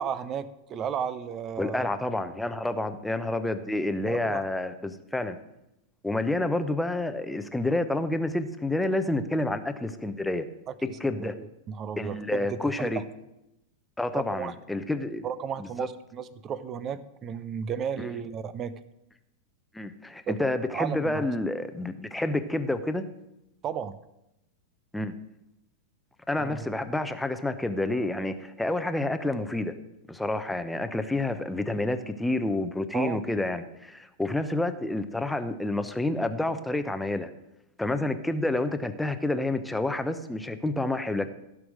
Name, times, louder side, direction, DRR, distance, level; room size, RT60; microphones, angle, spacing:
voice 1, 0.0-1.9 4.0-4.4 10.8-12.9 14.1-14.5 15.2-18.7 20.3-21.3 23.6-24.0 26.4-26.7 32.9-33.2, right 7 dB, 30° right, 15 dB, 0.7 m, -34 dB
voice 2, 1.6-5.4 6.0-10.4 11.0-11.3 12.0-13.0 14.0-15.3 15.6-15.7 18.0-18.1 19.7-23.1 24.9-25.1 26.3-29.7 30.1-37.3 37.8-41.3, left 2 dB, 5° left, 9 dB, 0.9 m, -29 dB
15.5 x 6.2 x 6.3 m, 0.88 s
figure-of-eight pair, 95°, 0 cm